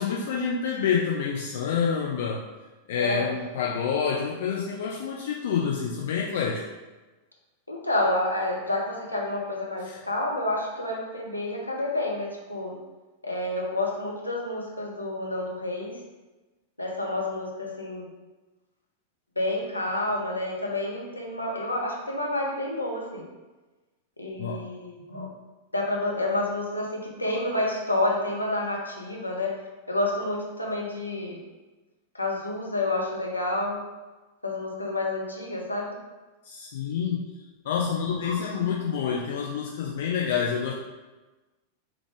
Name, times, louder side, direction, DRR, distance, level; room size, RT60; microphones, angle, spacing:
voice 1, 0.0-2.4 2.9-6.6 9.9-10.0 24.4-24.6 36.4-37.2 37.6-40.7, left 6 dB, 55° left, -1 dB, 0.5 m, -28 dB
voice 2, 2.9-3.3 7.7-12.8 13.2-16.0 16.8-18.1 19.4-23.2 24.2-25.3 25.7-29.6 29.9-31.4 32.1-33.8 34.4-35.9 38.2-38.7, left 2 dB, 85° left, -1 dB, 0.8 m, -29 dB
3.5 x 3.4 x 3.6 m, 1.2 s
figure-of-eight pair, 90°, 0 cm